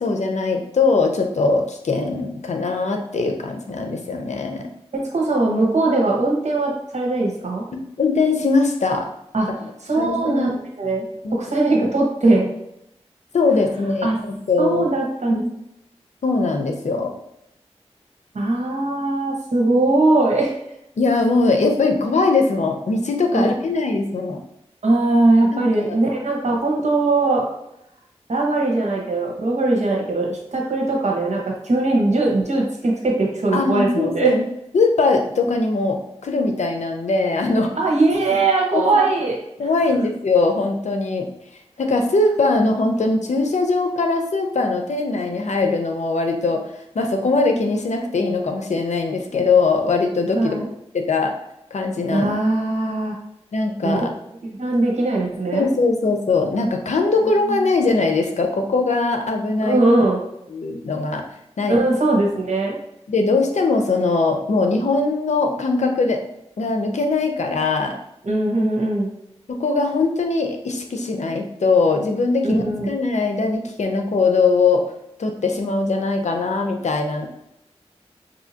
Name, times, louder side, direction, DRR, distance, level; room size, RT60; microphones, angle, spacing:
voice 1, 0.0-4.7 7.7-9.1 9.9-10.6 11.2-11.4 12.2-12.4 13.3-14.9 15.3-15.4 16.2-17.1 21.0-24.4 25.5-26.0 26.5-26.6 33.5-34.4 34.7-37.8 38.7-38.8 39.6-41.3 41.8-46.6 46.9-50.6 50.9-51.3 51.7-52.3 53.5-54.1 55.5-59.8 60.5-61.2 61.6-61.8 63.1-66.2 66.6-68.0 69.5-74.8 75.2-77.3, left 3 dB, 90° left, 4 dB, 0.6 m, -21 dB
voice 2, 4.9-7.6 9.3-9.5 9.9-10.5 10.8-11.0 11.3-12.5 14.0-14.2 14.6-15.4 18.3-20.5 23.3-23.5 24.8-27.5 28.3-34.3 37.8-39.7 50.3-50.7 52.1-53.1 53.8-54.0 54.4-55.7 59.6-60.2 61.7-62.8 68.2-69.1 72.4-72.9, right 2 dB, 85° right, -1 dB, 1.1 m, -20 dB
5.5 x 2.7 x 2.8 m, 0.81 s
wide cardioid pair, 50°, 12 cm